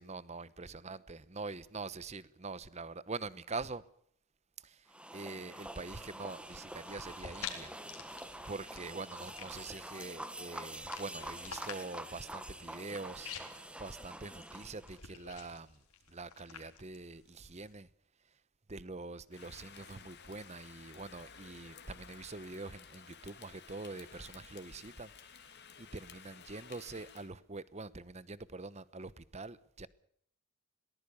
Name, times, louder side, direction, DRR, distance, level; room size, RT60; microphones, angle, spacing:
voice 1, 0.0-3.8 4.6-7.7 8.0-8.2 8.4-13.3 13.8-15.8 16.1-17.9 18.2-18.4 18.7-29.9, right 3 dB, 30° right, 0.9 m, -44 dB
sound 1, 4.9-15.0, right 1 dB, 5° right, 1.3 m, -46 dB
sound 2, 6.2-17.7, left 7 dB, 80° left, 4.1 m, -50 dB
Rain, 19.3-27.3, left 6 dB, 50° left, 2.6 m, -55 dB
22.5 x 19.0 x 6.9 m
head